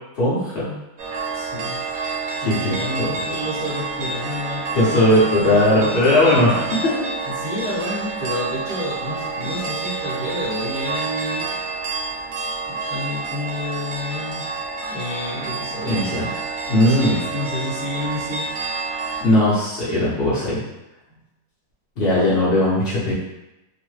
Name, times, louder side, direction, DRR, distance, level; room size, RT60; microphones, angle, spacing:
voice 1, 0.2-0.7 2.4-2.7 3.0-3.1 4.8-6.9 15.9-16.3 16.7-17.2 19.2-20.6 22.0-23.1, left 1 dB, 75° left, -9 dB, 0.5 m, -18 dB
sound 1, 1.0-19.2, right 4 dB, 70° right, 0.9 m, -29 dB
voice 2, 1.3-1.8 2.3-6.2 7.3-11.5 12.7-14.5 14.8-16.2 16.9-18.5, left 1 dB, 30° left, -8 dB, 0.9 m, -29 dB
3.0 x 2.0 x 3.1 m, 0.95 s
omnidirectional pair, 2.0 m